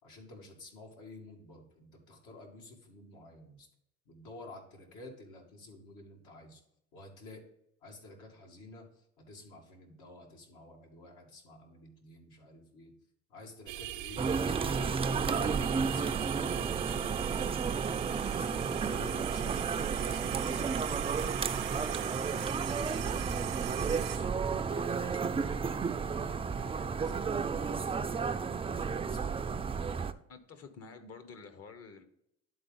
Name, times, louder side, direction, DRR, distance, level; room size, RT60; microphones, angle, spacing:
voice 1, 0.0-3.7 4.1-6.6 6.9-7.4 7.8-13.0 13.3-19.7 20.0-21.2 21.7-25.7 26.4-28.3 28.6-29.6, left 2 dB, 75° left, 2.2 m, -52 dB
sound 1, 13.7-24.2, right 15 dB, 85° right, 0.5 m, -40 dB
sound 2, 14.2-30.1, right 5 dB, 20° right, 0.4 m, -32 dB
voice 2, 30.3-32.0, left 5 dB, 50° left, 1.2 m, -49 dB
11.0 x 3.9 x 4.0 m
supercardioid pair, 85°, 31 cm